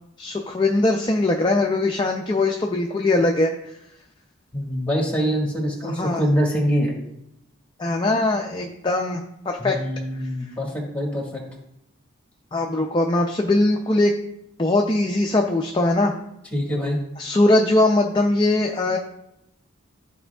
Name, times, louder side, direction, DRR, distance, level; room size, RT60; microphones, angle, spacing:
voice 1, 0.2-3.8 5.8-6.2 7.8-9.8 10.2-10.3 12.5-14.1 14.6-16.1 17.2-19.0, left 2 dB, 25° left, 2 dB, 0.4 m, -21 dB
voice 2, 4.5-6.9 9.6-11.4 16.5-17.0, equal, 5° left, -1 dB, 1.4 m, -24 dB
12.5 x 4.3 x 2.3 m, 0.81 s
head